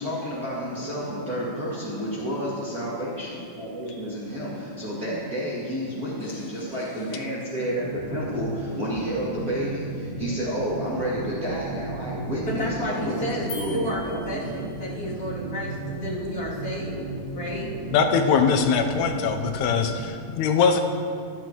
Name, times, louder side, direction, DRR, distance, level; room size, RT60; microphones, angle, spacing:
voice 1, 0.0-14.2, equal, 30° right, -10 dB, 2.1 m, -30 dB
sound 1, 0.7-20.1, right 3 dB, 65° right, 3.0 m, -36 dB
voice 2, 12.4-13.5 13.7-17.7, left 1 dB, 25° left, -8 dB, 2.5 m, -32 dB
sound 2, 13.5-15.0, left 4 dB, 60° left, 1.6 m, -41 dB
voice 3, 17.9-20.8, left 6 dB, 85° left, 5 dB, 2.7 m, -22 dB
15.0 x 12.0 x 3.0 m, 2.3 s
omnidirectional pair, 4.6 m